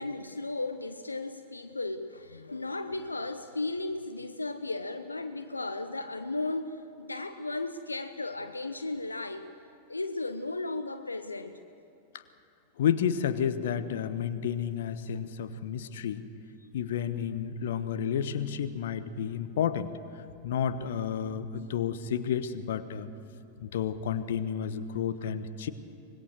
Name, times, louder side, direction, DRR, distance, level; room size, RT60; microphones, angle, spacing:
voice 1, 0.0-9.5 9.9-11.6, left 2 dB, 80° left, 8 dB, 0.8 m, -35 dB
voice 2, 12.8-16.2 16.7-19.9 20.4-23.1 23.6-25.7, left 8 dB, 60° left, 12 dB, 1.1 m, -31 dB
24.5 x 21.5 x 6.6 m, 2.6 s
figure-of-eight pair, 90°, 0 cm